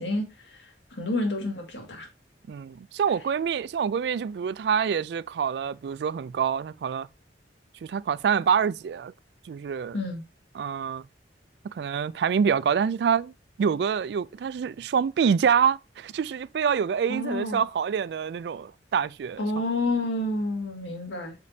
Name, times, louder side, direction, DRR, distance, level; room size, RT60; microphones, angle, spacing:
voice 1, 0.0-2.1 9.9-10.2 17.1-17.6 19.4-21.3, left 2 dB, 90° left, 2.0 m, -29 dB
voice 2, 2.5-7.1 7.8-9.1 9.4-10.0 10.5-11.0 11.6-13.3 13.6-19.4, right 7 dB, 65° right, 0.3 m, -26 dB
8.2 x 5.2 x 2.7 m
head